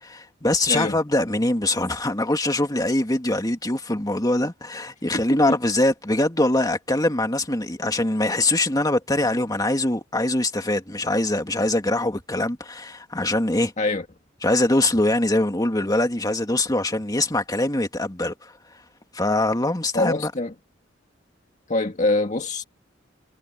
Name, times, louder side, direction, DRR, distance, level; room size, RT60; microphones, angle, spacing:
voice 1, 0.0-13.7 14.4-18.5 19.1-20.3, left 1 dB, 20° left, 2.5 m, -23 dB
voice 2, 19.9-20.5 21.7-22.6, left 2 dB, 40° left, 1.8 m, -24 dB
head